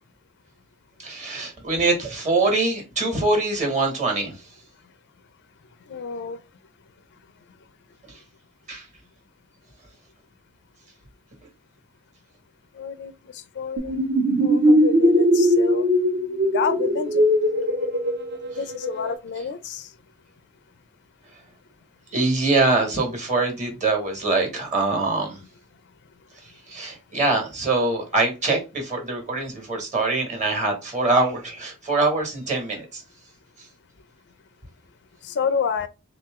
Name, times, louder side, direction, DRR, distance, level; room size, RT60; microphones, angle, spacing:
voice 1, 1.0-4.3 8.7-8.8 22.1-25.4 26.7-33.0, right 3 dB, 35° right, 1.4 m, -23 dB
voice 2, 5.9-6.4 12.7-14.1 14.4-15.9 16.5-17.2 18.6-19.9 35.2-35.9, left 6 dB, 50° left, 0.4 m, -29 dB
sound 1, 13.8-19.1, equal, 50° right, 0.7 m, -20 dB
3.6 x 2.8 x 3.5 m
head